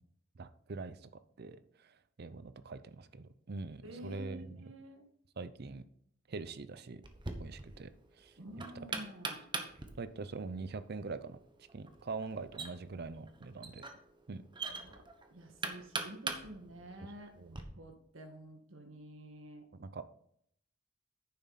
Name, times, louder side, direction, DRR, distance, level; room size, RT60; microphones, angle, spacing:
voice 1, 0.4-1.1 1.4-4.6 5.4-5.8 6.3-7.0 7.4-7.9 8.2-8.3 10.0-11.4 11.7-13.8 14.3-14.4 17.4-17.6 19.7-20.0, right 3 dB, 55° right, 13 dB, 0.6 m, -43 dB
voice 2, 3.8-5.1 8.4-9.4 14.7-15.0 15.3-19.7, right 1 dB, 85° right, 4 dB, 1.8 m, -50 dB
Knock, 7.0-17.6, right 3 dB, 25° right, 1.1 m, -43 dB
9.7 x 7.2 x 4.1 m, 0.69 s
head